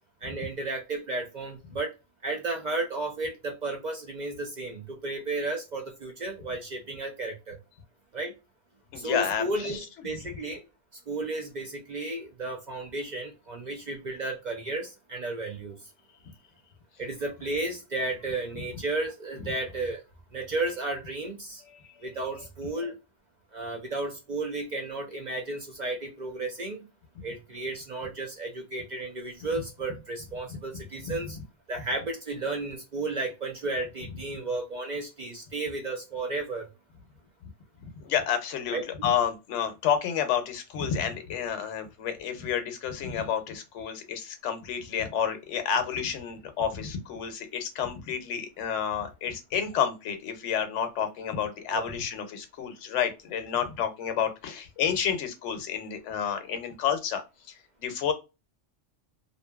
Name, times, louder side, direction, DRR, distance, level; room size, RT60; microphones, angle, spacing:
voice 1, 0.2-1.9 2.2-7.6 8.1-8.3 9.0-10.6 11.1-15.8 17.0-20.0 20.3-21.6 22.0-23.0 23.5-26.8 27.2-31.4 31.7-36.6 38.7-39.1 51.7-51.9, right 2 dB, 55° right, 0.5 m, -33 dB
voice 2, 8.9-9.8 31.0-31.1 38.0-57.2 57.8-58.1, left 8 dB, 75° left, 0.9 m, -30 dB
2.6 x 2.5 x 2.2 m
omnidirectional pair, 1.3 m